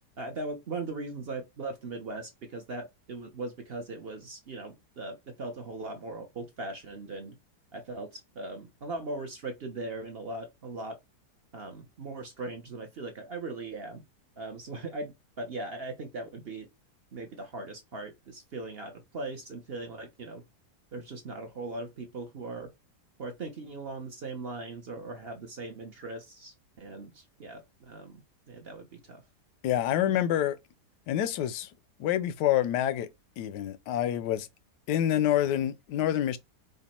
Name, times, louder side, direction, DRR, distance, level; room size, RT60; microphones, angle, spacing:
voice 1, 0.2-7.3 7.7-11.0 11.5-14.0 14.4-16.7 17.1-20.4 20.9-22.7 23.2-29.2, right 2 dB, 45° right, 0.8 m, -39 dB
voice 2, 29.6-30.6 31.1-31.7 32.0-33.1 33.4-34.5 34.9-36.4, left 11 dB, 85° left, 1.2 m, -27 dB
5.1 x 2.3 x 4.2 m
omnidirectional pair, 1.8 m